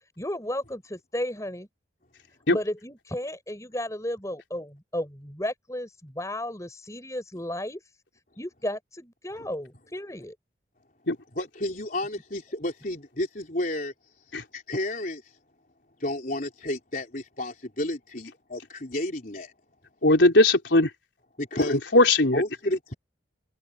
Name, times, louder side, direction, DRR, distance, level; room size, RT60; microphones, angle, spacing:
voice 1, 0.2-1.7 2.5-7.8 8.4-10.4, left 1 dB, 15° left, 6.9 m, -33 dB
voice 2, 11.3-13.9 14.5-15.4 16.0-19.5 21.4-21.8 22.3-22.9, left 1 dB, 45° left, 4.1 m, -31 dB
voice 3, 20.0-20.9 21.6-22.4, left 2 dB, 80° left, 4.0 m, -19 dB
head